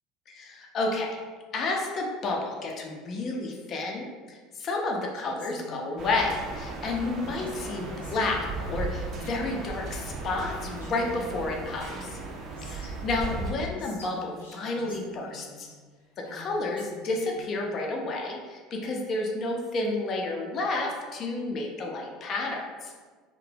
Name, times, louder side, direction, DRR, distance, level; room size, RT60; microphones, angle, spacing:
voice 1, 0.3-1.1 1.5-12.2 12.6-15.7 16.2-22.9, left 2 dB, 40° left, 0 dB, 0.5 m, -31 dB
Female speech woman speaking, 5.1-6.4 7.2-9.5 10.1-10.2 10.4-12.9 13.3-15.7 16.2-17.4, left 1 dB, 85° left, 0.6 m, -47 dB
sound 1, 6.0-13.5, right 3 dB, 45° right, 0.5 m, -36 dB
2.7 x 2.1 x 3.2 m, 1.5 s
figure-of-eight pair, 70°, 0 cm